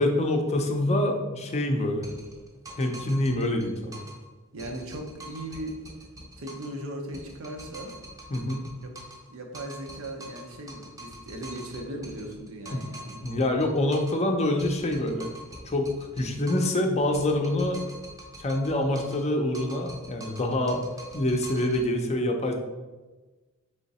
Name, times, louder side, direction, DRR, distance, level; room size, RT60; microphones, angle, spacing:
voice 1, 0.0-2.1 2.8-4.0 8.3-8.6 12.7-12.8 13.2-15.3 15.7-15.9 16.2-17.8 18.4-20.9 21.1-22.6, left 1 dB, 30° left, 3 dB, 0.5 m, -26 dB
sound 1, 2.0-4.2 4.6-6.8 7.1-9.3 9.5-14.2 14.6-16.8 17.1-19.3 19.5-21.9, right 1 dB, 15° right, 0.6 m, -45 dB
voice 2, 4.5-5.8 6.4-7.9 8.8-8.9 9.3-13.2, right 1 dB, 80° right, 3 dB, 0.7 m, -38 dB
3.7 x 3.5 x 4.1 m, 1.2 s
head